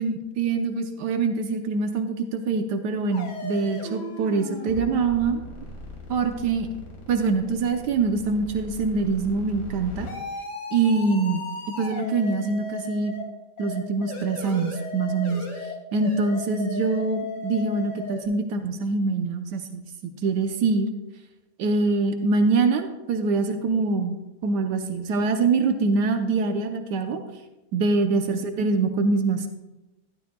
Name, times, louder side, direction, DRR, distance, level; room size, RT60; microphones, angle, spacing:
voice 1, 0.0-5.4 6.1-6.7 7.1-10.1 10.7-11.5 11.8-13.1 13.6-15.5 15.9-20.9 21.6-27.2 27.7-29.5, right 4 dB, 80° right, 6 dB, 1.4 m, -24 dB
sound 1, 3.1-13.2 13.6-18.2, left 2 dB, 75° left, 2.4 m, -37 dB
12.0 x 11.5 x 2.3 m, 1.0 s
omnidirectional pair, 1.8 m